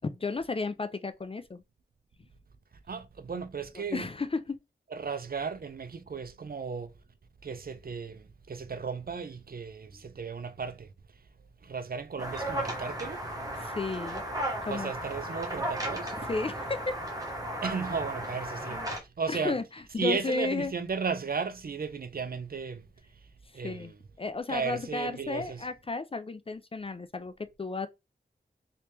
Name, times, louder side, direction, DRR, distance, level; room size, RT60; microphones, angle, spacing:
voice 1, 0.0-1.6 3.9-4.6 13.6-14.2 14.6-14.9 16.3-17.0 19.3-19.6 19.9-20.7 23.6-23.9 24.2-27.9, left 3 dB, 30° left, 0.3 m, -33 dB
voice 2, 2.9-4.1 4.9-7.0 7.4-11.3 11.6-13.3 14.7-16.2 17.6-19.6 20.0-24.0 24.5-25.7, right 5 dB, 55° right, 0.5 m, -35 dB
sound 1, 12.2-19.0, right 1 dB, 20° right, 1.2 m, -35 dB
3.1 x 2.9 x 3.2 m
wide cardioid pair, 65°, 19 cm